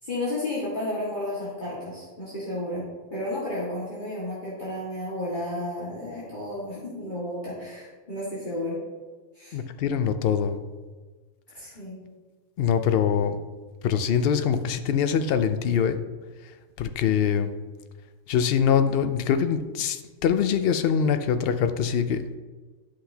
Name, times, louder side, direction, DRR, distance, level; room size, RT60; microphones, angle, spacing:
voice 1, 0.0-2.8 3.1-8.8 9.3-9.6 11.5-12.0, left 1 dB, 40° left, -9 dB, 2.0 m, -32 dB
voice 2, 9.5-10.6 12.6-13.4 13.8-16.0 16.8-17.5 18.3-22.3, left 7 dB, 60° left, 9 dB, 0.7 m, -23 dB
11.5 x 5.7 x 2.8 m, 1.4 s
omnidirectional pair, 1.3 m